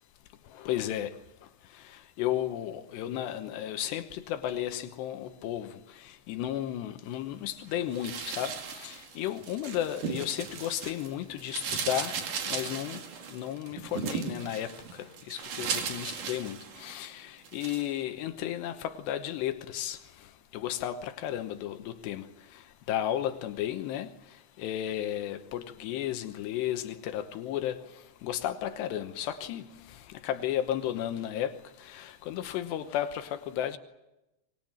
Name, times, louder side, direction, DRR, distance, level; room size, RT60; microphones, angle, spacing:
voice 1, 0.5-1.1 1.8-12.1 12.5-13.0 13.3-20.0 20.5-22.3 22.9-24.1 24.6-27.8 28.2-29.7 30.1-33.8, left 11 dB, 80° left, 9 dB, 3.2 m, -33 dB
sound 1, 7.9-11.1 11.4-17.1 17.4-17.9, right 6 dB, 55° right, 3.5 m, -36 dB
25.5 x 22.0 x 8.9 m, 0.96 s
omnidirectional pair, 4.9 m